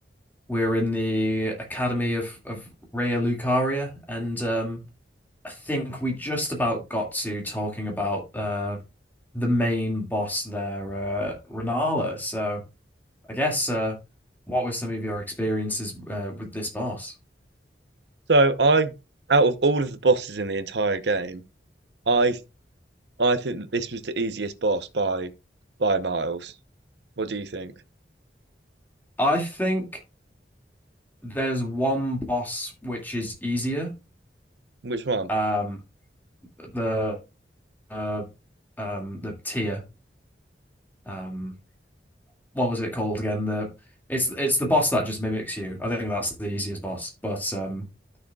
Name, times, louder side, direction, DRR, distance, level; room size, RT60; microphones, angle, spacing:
voice 1, 0.5-4.8 5.4-8.8 9.3-12.6 13.3-14.0 14.5-17.1 29.2-29.9 31.2-33.9 35.3-35.8 36.6-37.2 37.9-38.3 38.8-39.8 41.0-41.5 42.5-43.7 44.1-47.9, equal, 10° left, 2.1 m, -27 dB
voice 2, 18.3-18.9 19.3-21.4 22.1-22.4 23.2-25.3 25.8-26.5 27.2-27.7 34.8-35.3, right 3 dB, 75° right, 0.8 m, -23 dB
12.0 x 6.6 x 2.3 m
head